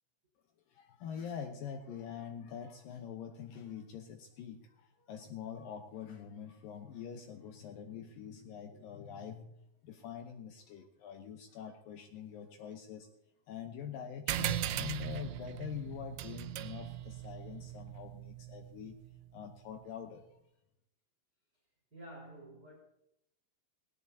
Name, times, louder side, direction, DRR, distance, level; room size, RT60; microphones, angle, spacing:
voice 1, 0.7-13.1 13.5-19.0 19.3-20.2, left 8 dB, 80° left, 5 dB, 2.0 m, -45 dB
sound 1, 14.3-19.2, right 13 dB, 90° right, 3.1 m, -39 dB
voice 2, 21.9-22.7, right 1 dB, 20° right, -2 dB, 4.7 m, -50 dB
19.5 x 17.5 x 2.8 m, 0.80 s
omnidirectional pair, 5.2 m